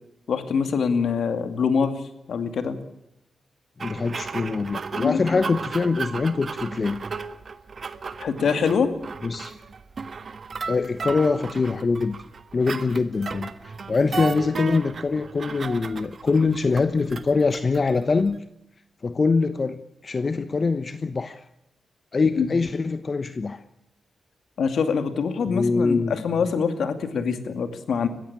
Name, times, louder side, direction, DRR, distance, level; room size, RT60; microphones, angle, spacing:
voice 1, 0.3-2.0 2.3-2.8 4.9-5.4 8.2-8.9 22.4-22.5 24.6-28.1, left 6 dB, 75° left, 9 dB, 2.4 m, -24 dB
voice 2, 3.8-7.0 9.2-9.5 10.7-12.2 12.5-18.4 19.0-21.4 22.1-23.6 25.5-26.2, left 4 dB, 45° left, 10 dB, 1.1 m, -24 dB
sound 1, 3.8-18.4, right 5 dB, 55° right, 1.5 m, -35 dB
21.5 x 15.5 x 8.7 m, 0.82 s
cardioid pair, 55°, 0 cm